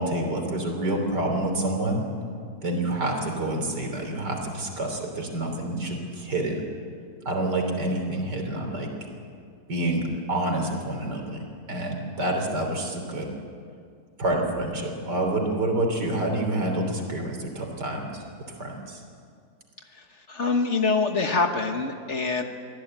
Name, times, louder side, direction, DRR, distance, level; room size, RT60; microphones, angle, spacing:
voice 1, 0.0-2.0 2.6-6.6 7.3-8.9 9.7-11.4 11.7-13.3 14.2-18.2 18.6-19.0, right 1 dB, 75° right, 3 dB, 3.9 m, -28 dB
voice 2, 19.9-22.4, left 4 dB, 45° left, 5 dB, 1.5 m, -25 dB
23.5 x 16.0 x 8.9 m, 2.3 s
omnidirectional pair, 1.9 m